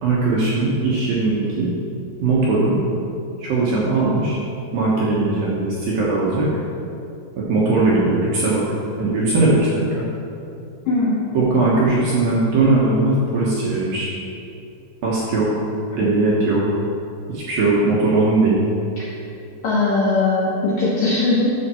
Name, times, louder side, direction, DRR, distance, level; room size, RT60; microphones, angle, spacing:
voice 1, 0.0-1.7 2.2-2.8 3.4-4.4 4.7-6.5 7.4-8.6 9.0-10.1 11.3-14.1 15.0-15.6 16.0-16.6 17.3-18.6, right 3 dB, 70° right, -6 dB, 2.3 m, -19 dB
voice 2, 10.9-11.2 16.0-16.1 19.0-19.1 19.6-21.5, left 3 dB, 75° left, -6 dB, 2.0 m, -20 dB
11.5 x 7.2 x 4.4 m, 2.6 s
omnidirectional pair, 5.5 m